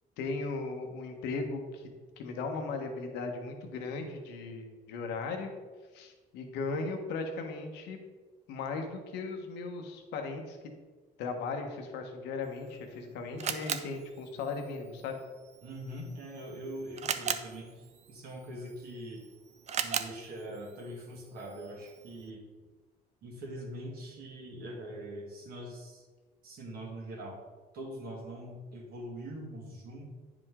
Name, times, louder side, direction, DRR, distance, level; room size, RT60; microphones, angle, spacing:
voice 1, 0.2-1.9 2.2-5.5 5.9-8.0 8.5-10.6 11.2-15.2, left 4 dB, 90° left, 4 dB, 1.1 m, -37 dB
Camera, 12.4-22.3, right 7 dB, 40° right, 0.5 m, -40 dB
voice 2, 15.6-19.2 19.8-22.5 23.2-26.1 26.4-27.4 27.7-30.2, right 1 dB, 65° right, 0 dB, 2.0 m, -43 dB
9.5 x 5.1 x 3.7 m, 1.3 s
cardioid pair, 110°, 17 cm